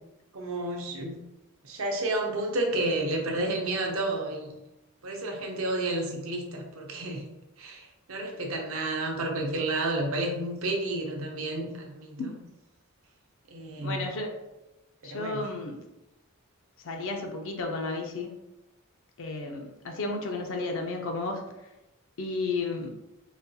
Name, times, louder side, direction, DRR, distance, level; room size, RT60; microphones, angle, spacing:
voice 1, 0.3-1.2 1.6-4.5 5.0-7.2 7.6-12.3 13.5-14.1 15.0-15.5, right 2 dB, 70° right, 1 dB, 0.7 m, -31 dB
voice 2, 13.8-14.3 15.0-15.8 16.8-18.3 19.2-21.4 22.2-22.9, left 3 dB, 60° left, 3 dB, 0.5 m, -32 dB
3.9 x 2.3 x 2.7 m, 0.95 s
head